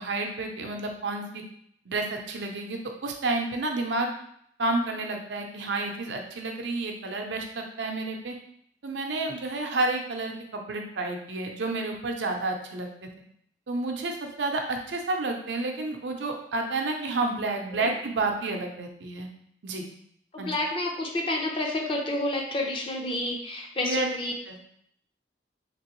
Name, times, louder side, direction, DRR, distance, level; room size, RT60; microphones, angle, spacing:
voice 1, 0.0-1.4 1.9-4.1 4.6-8.3 8.8-13.1 13.7-19.3 19.6-19.9 20.4-20.5 23.8-24.1 24.5-24.6, right 2 dB, 80° right, 3 dB, 0.6 m, -30 dB
voice 2, 20.3-24.3, left 1 dB, 30° left, 0 dB, 0.6 m, -29 dB
3.5 x 3.0 x 3.0 m, 0.68 s
head